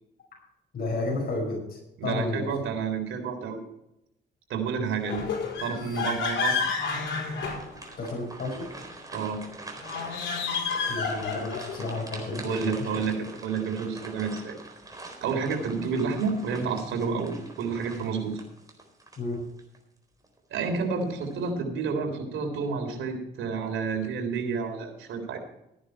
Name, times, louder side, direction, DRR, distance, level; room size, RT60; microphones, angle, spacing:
voice 1, 0.7-2.5 8.0-8.7 10.9-13.1 19.2-19.4, left 2 dB, 50° left, -2 dB, 5.8 m, -32 dB
voice 2, 2.0-3.6 4.5-5.3 5.6-6.6 9.1-9.4 12.3-14.6 15.2-18.4 20.5-25.4, right 5 dB, 80° right, 4 dB, 3.6 m, -30 dB
sound 1, 5.0-8.2 9.8-11.8, left 5 dB, 75° left, 4.9 m, -30 dB
sound 2, 7.2-19.8 20.2-20.4 21.0-21.5, right 2 dB, 20° right, 4.1 m, -44 dB
15.0 x 10.5 x 4.5 m, 0.83 s
cardioid pair, 90°, 20 cm